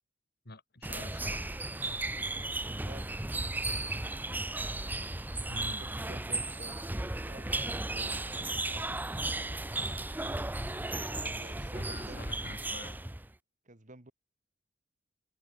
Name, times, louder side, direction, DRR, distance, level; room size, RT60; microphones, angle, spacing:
voice 1, 0.4-1.5 5.5-5.9 11.1-13.0, left 2 dB, 55° left, 3.4 m, -47 dB
sound 1, 0.8-13.3, right 2 dB, 10° right, 0.7 m, -35 dB
voice 2, 2.7-3.2 5.5-6.8 7.3-8.1 11.1-12.2 13.7-14.1, right 2 dB, 40° right, 2.1 m, -50 dB
head